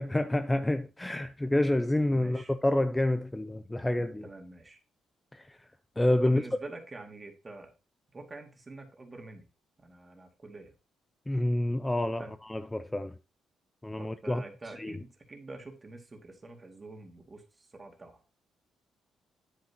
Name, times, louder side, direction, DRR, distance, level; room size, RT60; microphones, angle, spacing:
voice 1, 0.0-4.3 5.3-5.7 6.0-6.4 11.3-13.1 13.8-14.4 14.8-15.0, left 1 dB, 10° left, 0.4 m, -28 dB
voice 2, 2.1-2.5 4.0-4.8 6.2-7.7 8.1-9.4 9.8-10.7 12.2-12.3 14.0-18.2, right 2 dB, 25° right, 2.2 m, -46 dB
9.6 x 7.6 x 2.9 m
cardioid pair, 90°, 0 cm